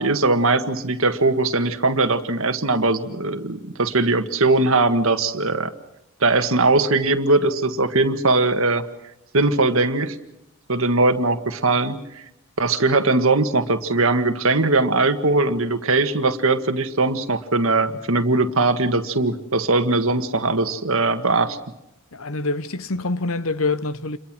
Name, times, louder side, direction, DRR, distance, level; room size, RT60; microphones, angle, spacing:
voice 1, 0.0-5.7 6.2-8.8 9.3-10.1 10.7-12.0 12.6-21.6, right 3 dB, 70° right, 1.8 m, -20 dB
voice 2, 22.1-24.2, left 3 dB, 70° left, 1.0 m, -25 dB
28.5 x 22.5 x 6.2 m
head